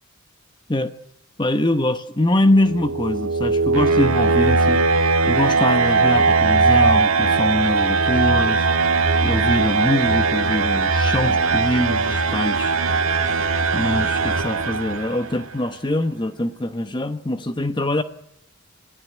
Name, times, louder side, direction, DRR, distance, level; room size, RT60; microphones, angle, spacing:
voice 1, 1.4-4.8 5.3-8.7 9.2-12.7 13.7-18.0, left 1 dB, 20° left, 9 dB, 0.9 m, -23 dB
sound 1, 2.5-15.4, right 4 dB, 80° right, 1.8 m, -19 dB
27.5 x 16.0 x 9.3 m, 0.79 s
head